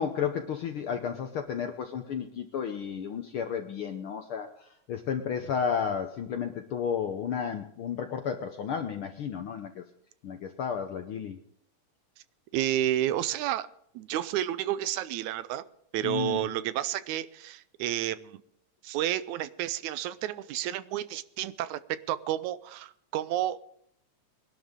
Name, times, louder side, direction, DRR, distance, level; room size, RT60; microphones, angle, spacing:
voice 1, 0.0-9.8 10.2-11.4 16.0-16.5, left 7 dB, 70° left, 6 dB, 1.3 m, -32 dB
voice 2, 12.5-13.7 14.0-15.6 15.9-18.4 18.8-21.8 22.1-23.6, right 13 dB, 80° right, 14 dB, 2.0 m, -31 dB
21.5 x 11.5 x 3.7 m, 0.68 s
omnidirectional pair, 3.4 m